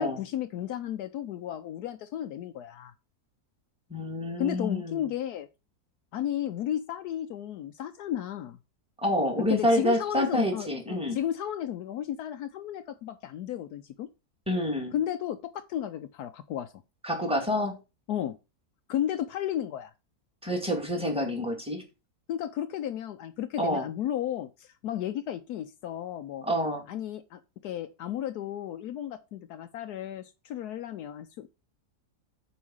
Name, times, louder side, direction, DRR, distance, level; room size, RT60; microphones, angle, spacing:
voice 1, 0.0-2.9 4.4-5.5 6.1-8.6 9.5-14.1 14.9-16.7 18.1-18.4 18.9-19.9 22.3-26.4 26.9-31.5, left 11 dB, 80° left, 1.2 m, -33 dB
voice 2, 3.9-5.0 9.0-11.2 14.5-14.9 17.0-17.7 20.4-21.8 23.6-23.8 26.4-26.9, equal, 5° right, 2.2 m, -27 dB
7.1 x 4.8 x 6.3 m
omnidirectional pair, 1.7 m